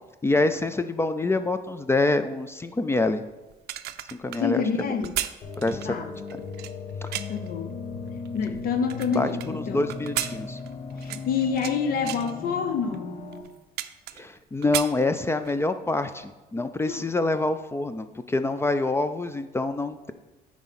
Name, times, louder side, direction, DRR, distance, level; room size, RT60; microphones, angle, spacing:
voice 1, 0.2-3.2 4.2-5.0 5.6-5.9 7.0-7.1 9.1-10.6 14.2-20.1, left 2 dB, 15° left, 10 dB, 0.4 m, -26 dB
sound 1, 3.5-7.5 8.1-9.5 9.9-11.8 12.0-12.3 12.9-13.0 13.3-14.4 14.6-15.6 16.0-16.2, right 13 dB, 75° right, 0.4 m, -34 dB
voice 2, 4.4-5.1 5.8-6.1 7.3-7.7 8.3-9.9 11.0-13.2 16.9-17.0, left 6 dB, 60° left, 8 dB, 0.7 m, -27 dB
sound 2, 5.4-13.4, left 4 dB, 40° left, 1.2 m, -37 dB
8.9 x 4.8 x 4.2 m, 1.1 s
cardioid pair, 110°, 17 cm